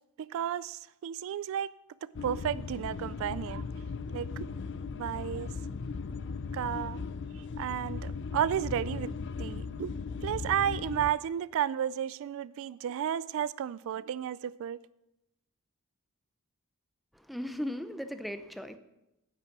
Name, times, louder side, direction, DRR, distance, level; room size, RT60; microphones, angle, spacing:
voice 1, 0.2-1.7 2.2-3.7 4.1-4.5 5.0-5.5 6.5-7.0 7.6-9.1 9.4-9.9 10.2-14.8, right 9 dB, 65° right, 0.3 m, -32 dB
sound 1, 2.1-11.1, left 4 dB, 55° left, 0.5 m, -37 dB
voice 2, 17.3-18.8, equal, ahead, 0.6 m, -37 dB
9.8 x 8.7 x 5.9 m
head